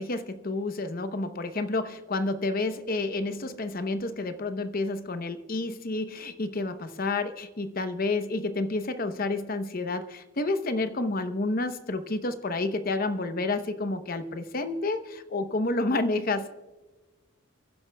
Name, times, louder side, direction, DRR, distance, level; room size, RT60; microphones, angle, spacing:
voice 1, 0.0-16.5, left 2 dB, 45° left, 10 dB, 0.8 m, -30 dB
29.5 x 11.0 x 2.2 m, 1.2 s
head